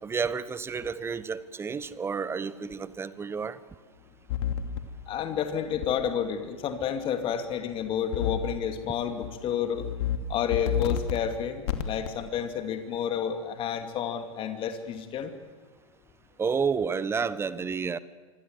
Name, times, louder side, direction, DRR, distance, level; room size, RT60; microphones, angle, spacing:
voice 1, 0.0-3.6 16.4-18.0, right 5 dB, 15° right, 17 dB, 1.1 m, -30 dB
sound 1, 4.3-4.8 5.8-5.9 8.1-8.6 9.0-9.3 9.7-10.2 10.5-11.2 11.7-12.1, left 9 dB, 50° left, 2.6 m, -29 dB
voice 2, 5.1-9.9 10.3-15.3, left 8 dB, 30° left, 6 dB, 2.7 m, -30 dB
26.5 x 25.0 x 8.1 m, 1.4 s
figure-of-eight pair, 100°, 18 cm